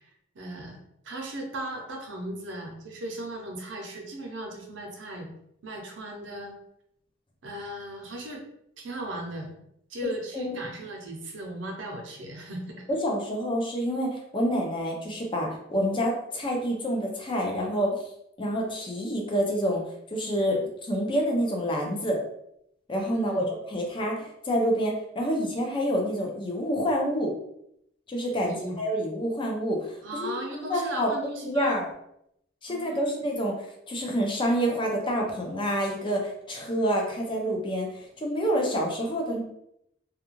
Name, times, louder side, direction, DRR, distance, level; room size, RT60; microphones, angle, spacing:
voice 1, 0.3-0.8 1.0-5.3 5.6-6.6 7.4-8.5 8.8-9.5 9.9-12.8 23.1-23.4 28.4-28.8 30.0-31.8 32.7-33.2, right 1 dB, 70° right, 2 dB, 0.6 m, -37 dB
voice 2, 12.9-17.9 18.4-19.8 20.1-22.2 22.9-23.4 23.7-27.3 28.1-30.3 30.7-31.1 31.4-31.9 32.6-33.5 33.9-39.4, equal, 25° left, 0 dB, 0.5 m, -27 dB
2.4 x 2.2 x 2.9 m, 0.76 s
head